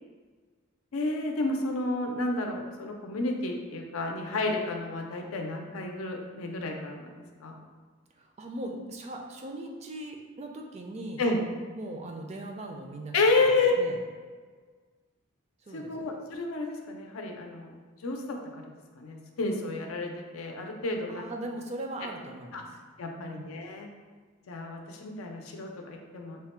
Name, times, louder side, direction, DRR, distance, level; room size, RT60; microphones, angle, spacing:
voice 1, 0.9-7.6 11.2-11.4 13.1-13.7 15.7-17.7 18.0-18.6 19.0-21.3 22.5-22.6 23.0-23.9 24.5-26.4, left 3 dB, 90° left, 2 dB, 0.5 m, -30 dB
voice 2, 8.2-11.2 11.7-13.1 13.5-14.0 15.6-16.1 21.1-22.7 23.2-23.5, right 1 dB, 30° right, 2 dB, 0.3 m, -39 dB
3.4 x 2.1 x 4.2 m, 1.5 s
head